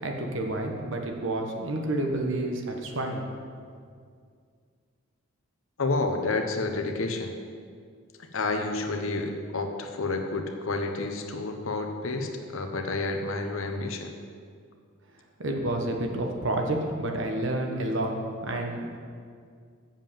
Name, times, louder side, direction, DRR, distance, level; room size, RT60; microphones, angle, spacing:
voice 1, 0.0-3.3 15.4-18.2 18.4-19.0, right 1 dB, 65° right, 2 dB, 1.2 m, -29 dB
voice 2, 5.8-7.3 8.3-14.1, left 3 dB, 75° left, 5 dB, 1.0 m, -30 dB
7.4 x 7.4 x 7.4 m, 2.2 s
head